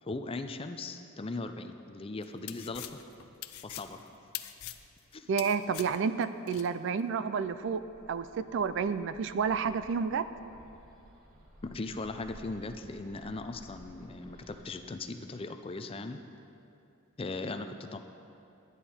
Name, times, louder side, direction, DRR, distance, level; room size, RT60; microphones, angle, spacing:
voice 1, 0.0-3.0 3.6-4.1 5.1-5.3 11.6-16.2 17.2-18.0, left 3 dB, 25° left, 8 dB, 0.4 m, -39 dB
sound 1, 2.2-6.7, left 13 dB, 80° left, 0.5 m, -43 dB
voice 2, 5.3-7.8 8.1-10.3, right 6 dB, 60° right, 13 dB, 0.3 m, -30 dB
Bird, 7.6-14.6, equal, 40° right, 1.5 m, -56 dB
12.5 x 9.9 x 4.3 m, 2.7 s
head